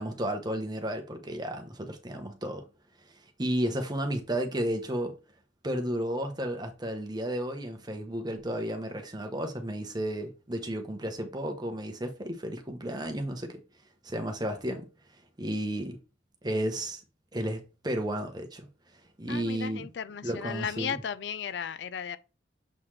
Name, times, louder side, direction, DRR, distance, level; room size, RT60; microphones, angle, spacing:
voice 1, 0.0-2.7 3.4-5.2 5.6-13.6 14.0-14.9 15.4-16.0 16.4-17.0 17.3-18.7 19.2-19.9 20.2-21.0, right 1 dB, 20° right, 1.0 m, -33 dB
voice 2, 19.3-22.2, left 7 dB, 65° left, 0.4 m, -35 dB
7.3 x 3.9 x 3.3 m
head